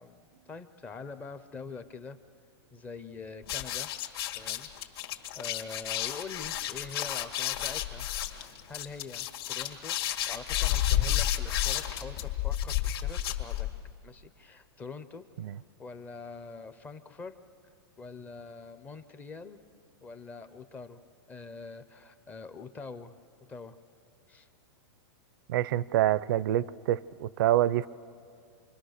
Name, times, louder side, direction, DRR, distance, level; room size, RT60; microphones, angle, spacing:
voice 1, 0.0-2.2 2.7-3.9 4.4-4.7 5.4-8.1 8.4-10.0 10.3-13.7 14.0-15.2 15.5-17.3 18.0-19.6 20.0-21.0 21.3-23.2 23.5-23.8 24.3-24.5, left 4 dB, 10° left, 11 dB, 0.5 m, -44 dB
sound 1, 3.4-13.9, left 12 dB, 65° left, 1.9 m, -31 dB
voice 2, 25.5-27.9, right 13 dB, 55° right, 20 dB, 0.5 m, -26 dB
27.5 x 22.0 x 6.5 m, 2.5 s
supercardioid pair, 170°, 14 cm